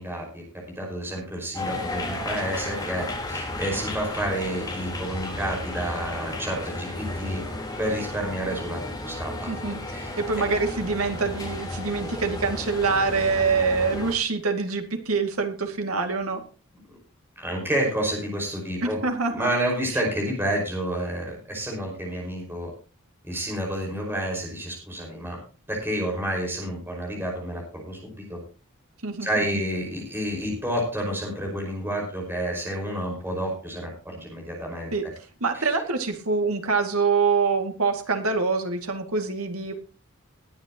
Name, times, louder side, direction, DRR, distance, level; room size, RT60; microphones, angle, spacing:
voice 1, 0.0-7.4 7.8-9.5 9.9-10.1 17.4-19.0 19.3-22.7 23.2-25.4 25.7-28.4 29.2-35.1 35.6-35.7, right 1 dB, 10° right, -1 dB, 5.3 m, -30 dB
sound 1, 1.5-14.1, left 1 dB, 20° left, 3.8 m, -33 dB
voice 2, 9.5-9.8 10.2-16.4 18.8-19.5 29.0-29.3 29.5-29.7 34.9-35.0 35.4-39.7, right 4 dB, 85° right, 5 dB, 2.4 m, -25 dB
20.5 x 9.5 x 3.0 m, 0.34 s
head